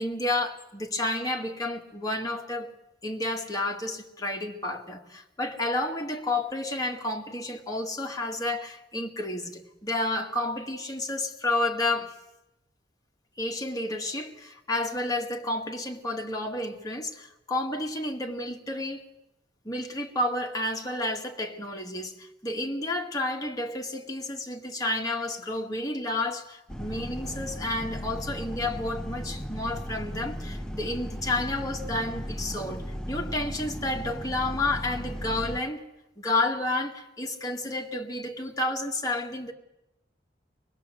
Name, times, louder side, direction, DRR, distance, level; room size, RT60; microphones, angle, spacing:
voice 1, 0.0-2.8 3.0-12.1 13.4-19.1 19.6-35.8 36.2-39.5, left 2 dB, 20° left, 2.0 m, -31 dB
sound 1, 26.7-35.6, equal, 5° left, 0.8 m, -36 dB
25.0 x 20.0 x 7.7 m
head